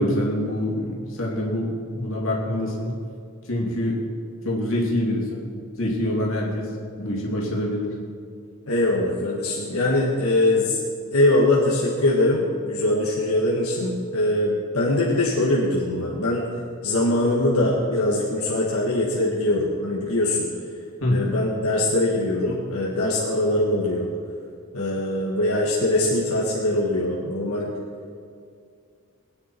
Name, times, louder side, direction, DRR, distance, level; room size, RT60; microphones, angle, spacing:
voice 1, 0.0-3.0 3.4-4.0 4.4-5.5 5.8-7.9 21.0-21.3, left 1 dB, 65° left, -2 dB, 2.9 m, -25 dB
voice 2, 8.7-10.8 11.1-16.5 16.8-20.5 21.1-24.1 24.7-27.7, left 1 dB, 85° left, -4 dB, 1.7 m, -22 dB
20.5 x 9.8 x 4.5 m, 2.3 s
head